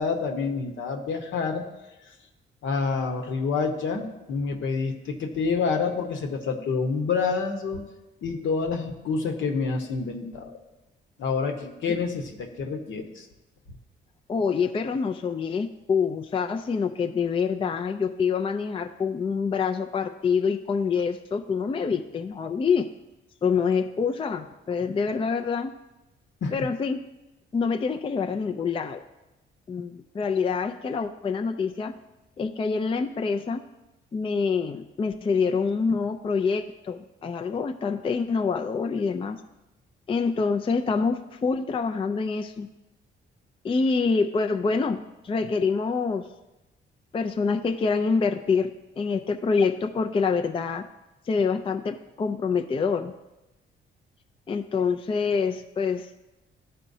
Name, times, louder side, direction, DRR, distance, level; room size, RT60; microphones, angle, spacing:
voice 1, 0.0-1.6 2.6-7.8 8.2-10.6 11.2-13.2 26.4-26.5, left 4 dB, 75° left, 2 dB, 1.1 m, -28 dB
voice 2, 14.3-22.9 23.4-25.7 26.5-27.0 27.5-29.0 29.7-31.9 32.4-33.6 34.1-39.4 40.1-42.7 43.6-46.3 47.1-48.7 49.0-50.8 51.3-53.1 54.5-56.1, left 5 dB, 25° left, 6 dB, 0.4 m, -26 dB
13.0 x 4.3 x 2.7 m, 1.0 s
cardioid pair, 85°, 20 cm